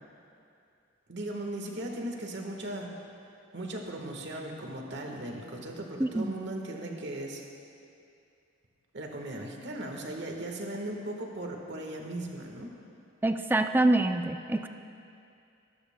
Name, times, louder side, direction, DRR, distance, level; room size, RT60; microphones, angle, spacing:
voice 1, 1.1-2.9 3.5-7.4 8.9-12.7, right 1 dB, 65° right, 1 dB, 1.4 m, -37 dB
voice 2, 6.0-6.3 13.2-14.7, right 2 dB, 10° right, 7 dB, 0.4 m, -25 dB
19.5 x 13.0 x 2.2 m, 2.6 s
head